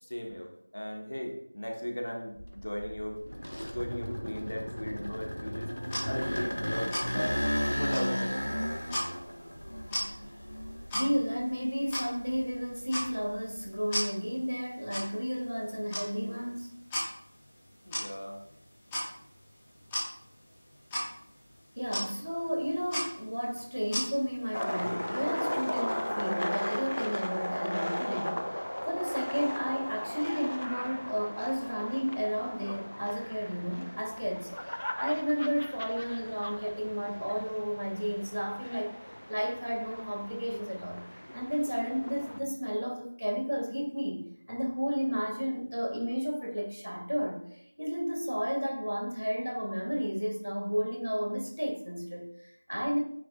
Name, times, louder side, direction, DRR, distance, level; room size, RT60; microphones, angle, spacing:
voice 1, 0.0-3.2 3.5-7.4 7.8-8.6 17.8-18.4 21.9-22.0, equal, 50° left, 0 dB, 1.5 m, -37 dB
sound 1, 2.4-11.4 11.9-13.7, equal, 85° left, 1.3 m, -34 dB
sound 2, 5.8-24.6, equal, 5° left, 0.9 m, -40 dB
voice 2, 10.9-16.8 21.8-41.0 41.3-53.0, equal, 75° right, 1 dB, 2.2 m, -33 dB
sound 3, 24.5-42.4, equal, 70° left, 0.7 m, -37 dB
9.1 x 3.5 x 3.8 m, 0.72 s
figure-of-eight pair, 175°, 0 cm